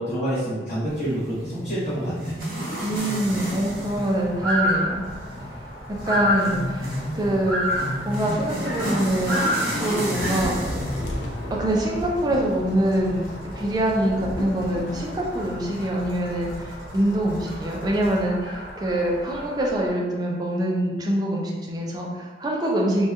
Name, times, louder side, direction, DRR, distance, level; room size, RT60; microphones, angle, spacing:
voice 1, 0.0-2.4, right 1 dB, 40° left, -14 dB, 0.8 m, -27 dB
sound 1, 0.9-18.2, equal, 50° right, 0.7 m, -34 dB
voice 2, 2.8-5.0 6.0-10.6 11.5-23.1, right 1 dB, 25° right, -2 dB, 0.4 m, -25 dB
sound 2, 3.1-19.9, equal, 10° left, 0.7 m, -32 dB
Thunder / Rain, 8.1-16.7 16.9-17.1 17.5-17.7, left 1 dB, 80° left, 0.4 m, -37 dB
2.7 x 2.2 x 2.2 m, 1.4 s
head